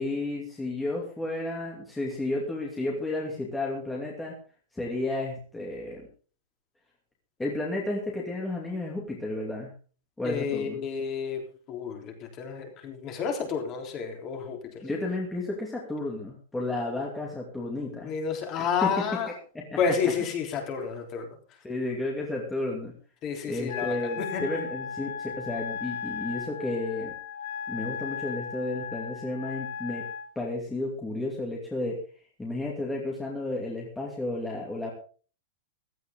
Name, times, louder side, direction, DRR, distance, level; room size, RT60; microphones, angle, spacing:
voice 1, 0.0-4.3 4.7-6.0 7.4-9.7 10.2-10.8 14.8-18.1 18.6-18.9 19.5-19.6 20.0-20.1 21.6-22.9 23.4-27.1 27.7-30.0 30.4-32.0 32.4-34.9, left 2 dB, 5° left, -3 dB, 2.6 m, -32 dB
voice 2, 10.2-11.4 11.7-14.8 18.0-19.3 19.8-21.3 23.2-24.7, left 6 dB, 25° left, 3 dB, 3.5 m, -30 dB
Wind instrument woodwind instrument, 23.7-30.3, left 7 dB, 60° left, 3.2 m, -36 dB
16.0 x 13.5 x 3.7 m, 0.39 s
supercardioid pair, 175°, 0 cm